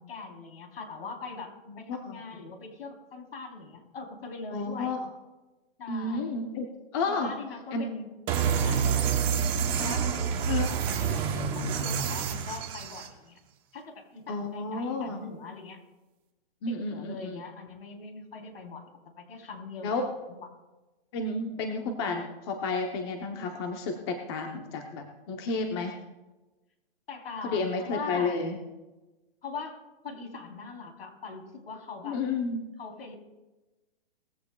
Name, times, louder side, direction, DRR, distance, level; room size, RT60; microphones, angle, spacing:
voice 1, 0.0-4.9 5.8-6.3 7.1-8.1 8.5-9.1 9.8-13.4 13.7-15.8 16.7-18.9 19.2-20.5 27.1-28.4 29.4-32.2 32.8-33.2, left 4 dB, 65° left, 3 dB, 3.8 m, -41 dB
voice 2, 1.7-2.2 4.5-5.0 5.9-7.3 7.7-7.8 10.5-10.7 14.3-15.2 16.6-17.4 19.8-20.1 21.1-25.9 27.4-28.6 32.0-32.6, left 3 dB, 25° left, 3 dB, 0.9 m, -31 dB
sound 1, 8.3-13.1, right 7 dB, 15° right, 0.9 m, -28 dB
20.0 x 15.5 x 2.3 m, 1.1 s
hypercardioid pair, 160°, 32 cm